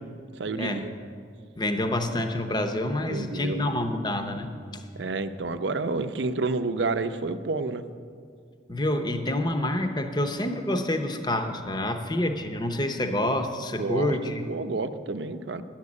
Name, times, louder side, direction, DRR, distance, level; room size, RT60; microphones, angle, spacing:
voice 1, 0.4-0.9 3.1-3.7 5.0-7.8 13.8-14.2 14.5-15.6, right 3 dB, 75° right, 10 dB, 0.6 m, -29 dB
voice 2, 1.6-4.8 8.7-14.4, left 1 dB, 25° left, 6 dB, 0.7 m, -28 dB
10.5 x 7.3 x 9.6 m, 2.2 s
head